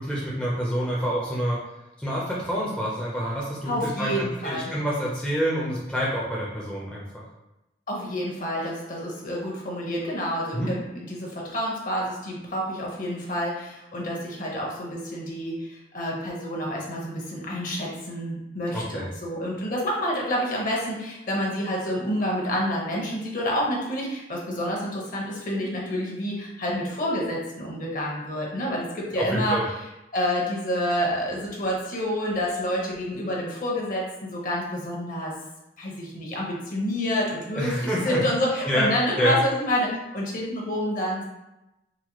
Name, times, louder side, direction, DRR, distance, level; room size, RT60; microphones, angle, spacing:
voice 1, 0.0-1.6 2.0-7.2 10.5-10.8 18.7-19.1 29.1-29.6 37.5-38.2 38.7-38.9 39.2-39.4, equal, 5° left, -6 dB, 0.5 m, -27 dB
voice 2, 3.7-4.7 7.9-29.6 30.1-35.3 35.8-41.3, equal, 50° left, -3 dB, 0.9 m, -28 dB
4.0 x 2.2 x 2.9 m, 0.93 s
head